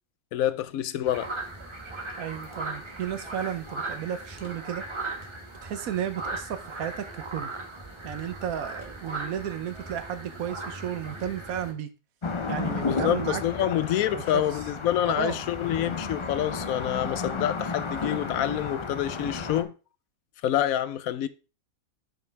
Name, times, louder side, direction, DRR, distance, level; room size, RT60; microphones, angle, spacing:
voice 1, 0.3-1.3 12.8-19.7 20.4-21.3, left 11 dB, 80° left, 1.0 m, -27 dB
sound 1, 1.1-11.7, right 2 dB, 20° right, 1.4 m, -38 dB
voice 2, 2.2-4.8 5.6-7.5 8.0-11.9 12.5-13.8 14.1-14.4 15.0-15.4, right 9 dB, 80° right, 1.3 m, -33 dB
sound 2, 12.2-19.6, left 4 dB, 35° left, 0.5 m, -33 dB
6.0 x 5.3 x 4.6 m
omnidirectional pair, 1.5 m